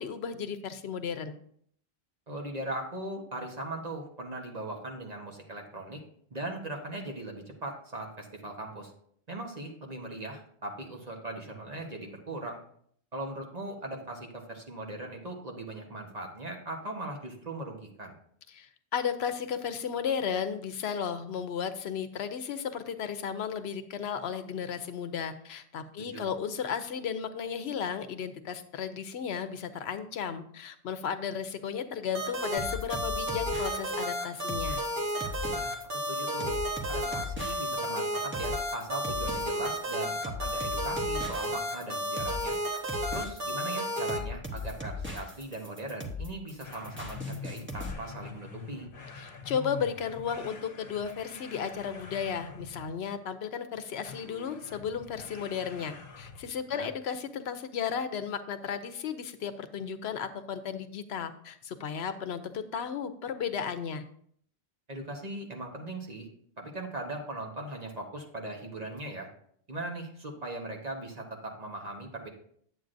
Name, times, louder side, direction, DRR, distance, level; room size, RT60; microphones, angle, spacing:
voice 1, 0.0-1.3 18.5-34.8 49.2-64.0, left 7 dB, 80° left, 10 dB, 0.9 m, -34 dB
voice 2, 2.3-6.0 6.3-8.9 9.3-12.6 13.1-18.1 26.0-26.3 35.5-36.6 36.9-42.6 43.1-48.9 56.7-56.9 64.9-66.3 66.6-69.3 69.7-72.3, right 2 dB, 40° right, 1 dB, 1.3 m, -39 dB
sound 1, 32.1-44.2, equal, 55° right, 1.6 m, -32 dB
sound 2, 32.6-47.9, left 2 dB, 10° right, 0.9 m, -39 dB
sound 3, 46.6-53.1 54.0-56.6, left 4 dB, 65° left, 1.0 m, -45 dB
9.3 x 8.0 x 2.6 m, 0.63 s
omnidirectional pair, 1.1 m